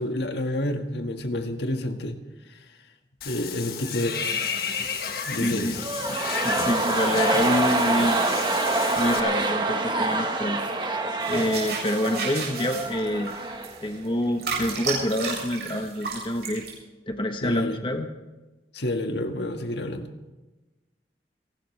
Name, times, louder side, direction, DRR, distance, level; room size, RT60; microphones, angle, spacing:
voice 1, 0.0-2.2 3.2-4.2 5.3-5.8 17.4-17.8 18.7-20.3, left 1 dB, 80° left, 5 dB, 1.7 m, -29 dB
Water / Bathtub (filling or washing), 3.2-9.2, left 6 dB, 60° left, 1.6 m, -32 dB
voice 2, 5.4-5.7 6.4-8.2 9.0-10.6 11.3-13.4 13.8-16.6 17.1-18.1, left 1 dB, 30° left, 5 dB, 1.1 m, -26 dB
sound 1, 5.7-13.8 14.1-14.2, right 2 dB, 25° right, 1.3 m, -26 dB
sound 2, 11.2-16.7, right 5 dB, 70° right, 7.3 m, -33 dB
30.0 x 12.0 x 3.3 m, 1.1 s
head